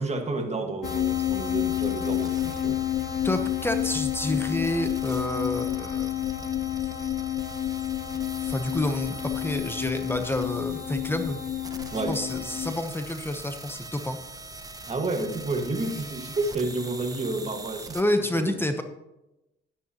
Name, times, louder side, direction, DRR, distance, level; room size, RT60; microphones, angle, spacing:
voice 1, 0.0-2.8 11.9-12.2 14.8-18.0 18.3-18.5, right 2 dB, 35° right, 4 dB, 1.7 m, -30 dB
sound 1, 0.8-12.7, left 12 dB, 50° left, 0.4 m, -29 dB
sound 2, 0.8-18.0, right 2 dB, 20° right, 1.1 m, -42 dB
voice 2, 3.2-6.2 8.4-11.4 12.1-14.2 17.9-18.8, left 1 dB, 10° left, 7 dB, 0.9 m, -29 dB
11.0 x 10.5 x 3.0 m, 0.94 s
cardioid pair, 90°, 20 cm